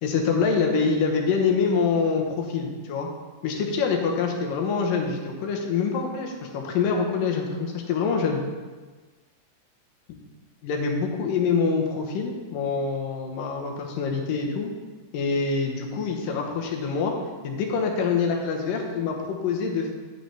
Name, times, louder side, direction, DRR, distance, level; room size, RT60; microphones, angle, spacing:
voice 1, 0.0-3.1 3.4-8.4 10.6-14.7 15.1-17.1 17.4-19.9, left 5 dB, 85° left, 1 dB, 2.7 m, -25 dB
9.6 x 7.9 x 3.4 m, 1.4 s
omnidirectional pair, 3.8 m